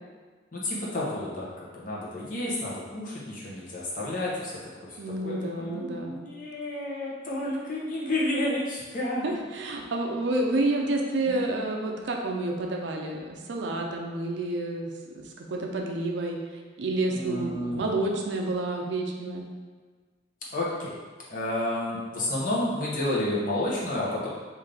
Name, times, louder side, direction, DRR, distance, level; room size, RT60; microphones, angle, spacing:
voice 1, 0.5-4.5 4.9-9.3 11.2-11.4 17.1-18.0 20.5-20.9 21.3-24.3, left 1 dB, 45° left, -6 dB, 0.8 m, -31 dB
voice 2, 5.0-6.1 9.2-19.4, right 2 dB, 65° right, 1 dB, 0.5 m, -29 dB
3.7 x 2.7 x 3.4 m, 1.5 s
head